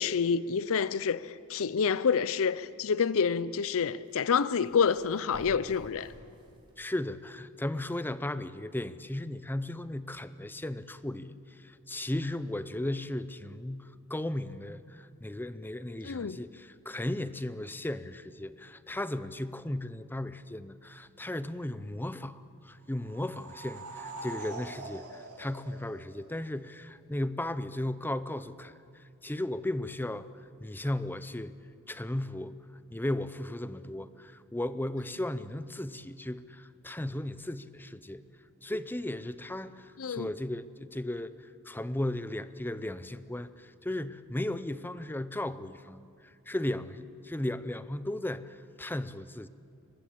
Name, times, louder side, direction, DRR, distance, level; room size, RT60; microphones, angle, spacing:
voice 1, 0.0-6.1 16.0-16.4 40.0-40.3, left 6 dB, 65° left, 0.6 m, -28 dB
sound 1, 4.1-6.8, equal, 20° right, 3.9 m, -50 dB
voice 2, 6.8-30.3 30.6-31.5 31.9-32.6 32.9-38.2 38.6-41.3 41.6-49.5, left 1 dB, 10° left, 0.6 m, -36 dB
sound 2, 22.9-26.5, right 2 dB, 80° right, 3.1 m, -44 dB
23.5 x 20.0 x 8.7 m
head